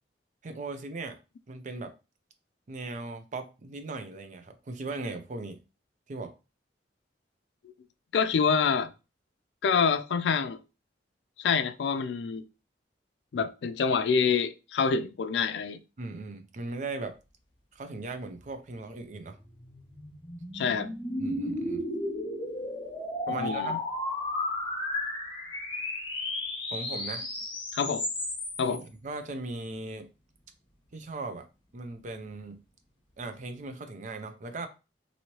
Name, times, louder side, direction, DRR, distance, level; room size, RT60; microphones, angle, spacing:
voice 1, 0.4-1.2 1.5-1.9 2.7-5.6 6.1-6.3 16.0-17.1 17.8-19.4 21.2-21.8 23.3-23.8 26.7-27.3 28.7-30.1 30.9-31.5 31.7-32.6 33.2-34.7, right 3 dB, 45° right, 0.5 m, -38 dB
voice 2, 8.1-8.9 9.6-10.6 11.4-12.4 13.3-15.8 20.5-20.9 23.3-23.8 27.7-28.0 28.6-28.8, left 6 dB, 80° left, 0.4 m, -26 dB
sound 1, 19.1-28.8, left 1 dB, 30° left, 0.9 m, -34 dB
2.9 x 2.7 x 2.9 m
head